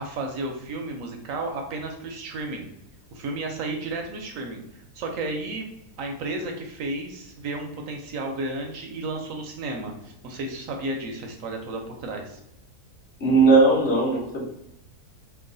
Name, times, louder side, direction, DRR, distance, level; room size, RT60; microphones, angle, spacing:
voice 1, 0.0-2.7 3.1-4.6 4.9-5.7 6.0-12.4, right 2 dB, 70° right, 3 dB, 0.9 m, -32 dB
voice 2, 13.2-14.5, right 3 dB, 55° left, -3 dB, 1.0 m, -18 dB
3.0 x 2.3 x 3.7 m, 0.82 s
omnidirectional pair, 1.6 m